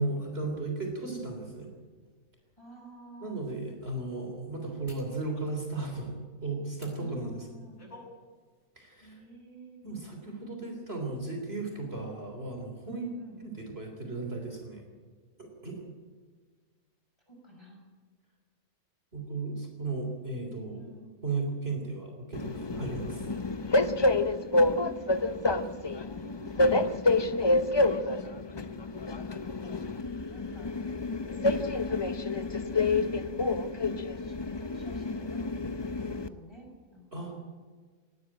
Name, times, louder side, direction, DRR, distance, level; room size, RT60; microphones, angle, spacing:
voice 1, 0.0-1.7 3.2-6.2 6.4-7.5 8.8-9.2 9.8-13.0 13.4-14.9 15.4-15.8 19.1-20.8 21.2-23.3 37.1-37.4, right 3 dB, 40° right, 3 dB, 3.8 m, -35 dB
sound 1, 2.0-2.1 2.8-2.9 4.9-5.1 6.7-7.0 7.5-8.1 8.5-8.7, left 2 dB, 65° left, 7.4 m, -50 dB
voice 2, 2.6-3.4 6.9-7.8 9.0-10.2 12.8-13.4 17.3-17.8 20.8-21.1 23.8-24.3 24.6-25.4 26.0-28.7 28.9-30.9 31.3-32.1 33.0-33.5 33.8-35.5 35.8-37.3, right 1 dB, 20° left, 0 dB, 6.6 m, -50 dB
Train, 22.3-36.3, left 2 dB, 35° left, 0.4 m, -28 dB
19.0 x 17.5 x 8.8 m, 1.5 s
omnidirectional pair, 1.5 m